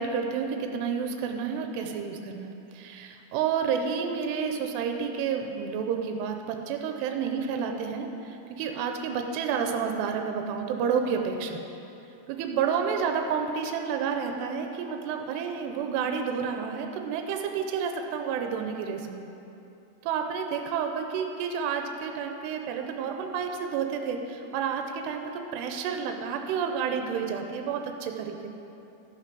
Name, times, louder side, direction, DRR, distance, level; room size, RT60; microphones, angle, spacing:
voice 1, 0.0-11.6 12.3-19.2 20.0-28.5, right 6 dB, 85° right, 4 dB, 2.8 m, -30 dB
14.0 x 5.8 x 6.1 m, 2.9 s
omnidirectional pair, 4.7 m